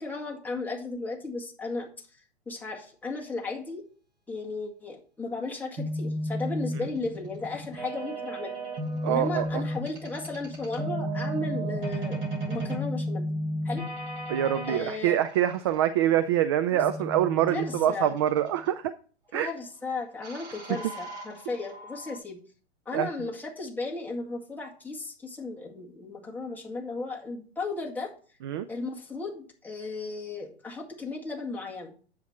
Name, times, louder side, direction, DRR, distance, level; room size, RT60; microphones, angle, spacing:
voice 1, 0.0-1.9 2.5-3.8 4.3-8.6 9.0-12.2 12.5-13.3 13.6-13.8 14.7-15.2 16.7-16.8 17.5-18.1 19.3-22.4 22.9-28.1 28.7-31.9, left 3 dB, 5° left, -2 dB, 1.9 m, -35 dB
sound 1, 5.8-14.8 16.8-18.7 20.2-22.2, equal, 50° right, 5.5 m, -33 dB
voice 2, 9.0-9.6 14.3-18.9 19.3-19.5 20.7-20.8 22.9-23.1 28.4-28.7, right 11 dB, 25° right, 11 dB, 0.4 m, -25 dB
9.9 x 7.3 x 4.4 m, 0.42 s
figure-of-eight pair, 115°, 34 cm